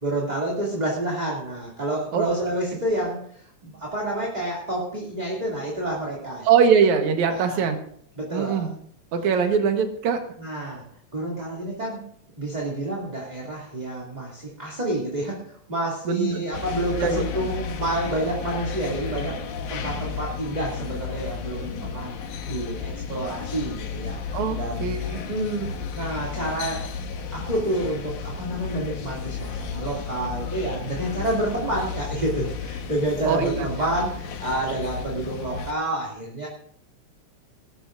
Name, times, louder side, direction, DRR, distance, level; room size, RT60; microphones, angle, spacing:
voice 1, 0.0-6.5 7.3-7.6 8.2-8.7 10.4-10.8 11.1-12.0 12.4-19.4 19.7-22.1 22.5-24.2 24.5-25.7 25.9-26.9 27.3-36.5, right 1 dB, 15° right, -4 dB, 2.4 m, -29 dB
voice 2, 6.4-7.8 8.3-8.7 9.1-10.2 16.1-16.5 17.0-17.2 24.3-25.2 33.3-33.5, right 6 dB, 75° right, 6 dB, 2.7 m, -22 dB
sound 1, 16.5-35.7, left 6 dB, 85° left, 2.8 m, -33 dB
20.0 x 13.0 x 2.6 m, 0.64 s
omnidirectional pair, 3.4 m